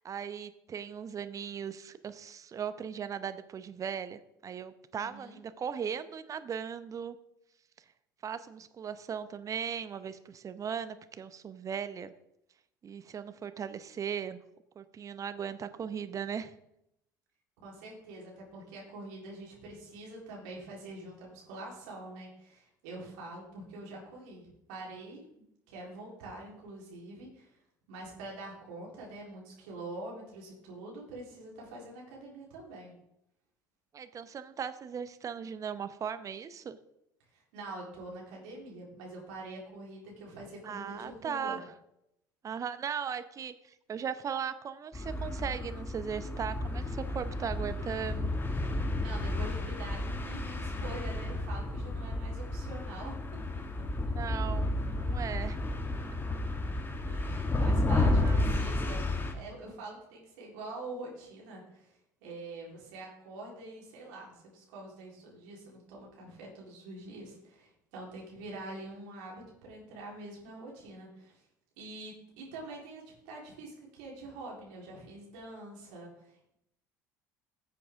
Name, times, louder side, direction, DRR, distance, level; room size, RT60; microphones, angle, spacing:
voice 1, 0.0-7.2 8.2-12.1 12.8-14.4 14.8-16.5 33.9-36.8 40.6-41.6 42.4-48.3 54.1-55.6 58.2-58.5, right 7 dB, 35° right, 12 dB, 0.9 m, -38 dB
voice 2, 4.9-5.4 17.6-25.2 25.7-27.6 27.9-32.9 37.3-41.6 49.0-53.1 53.5-53.6 57.1-59.0 59.3-61.9 62.2-71.4 71.8-76.5, right 2 dB, 65° right, -3 dB, 4.0 m, -45 dB
sound 1, 44.9-59.3, left 2 dB, 20° left, 1.5 m, -32 dB
14.5 x 7.6 x 3.7 m, 0.80 s
figure-of-eight pair, 65°, 10 cm